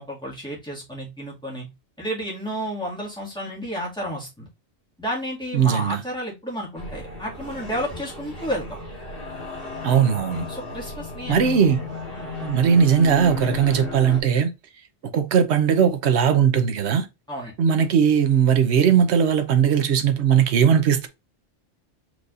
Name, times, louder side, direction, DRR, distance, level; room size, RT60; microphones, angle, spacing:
voice 1, 0.0-1.7 2.0-4.5 5.0-8.8 10.5-11.5 12.1-12.3 17.3-17.5, equal, 5° left, 2.0 m, -31 dB
voice 2, 5.5-6.0 9.8-10.5 11.3-11.8 12.4-14.5 15.1-17.1 17.6-21.1, right 7 dB, 70° right, 1.0 m, -19 dB
sound 1, 6.8-14.2, left 4 dB, 50° left, 1.7 m, -34 dB
4.6 x 4.0 x 2.5 m
omnidirectional pair, 1.2 m